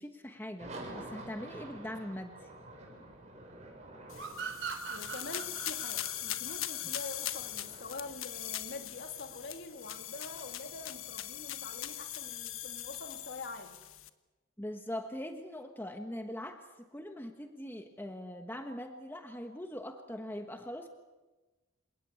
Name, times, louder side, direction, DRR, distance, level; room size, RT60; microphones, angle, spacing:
voice 1, 0.0-2.3 14.6-20.9, left 1 dB, 10° left, 5 dB, 1.3 m, -42 dB
sound 1, 0.6-12.8, right 2 dB, 35° right, 6.6 m, -51 dB
sound 2, 4.1-14.1, left 12 dB, 75° left, 1.3 m, -41 dB
sound 3, 4.2-7.5, right 6 dB, 60° right, 4.2 m, -41 dB
voice 2, 4.9-13.8, left 3 dB, 55° left, 5 dB, 2.5 m, -45 dB
27.5 x 18.5 x 8.4 m, 1.2 s
head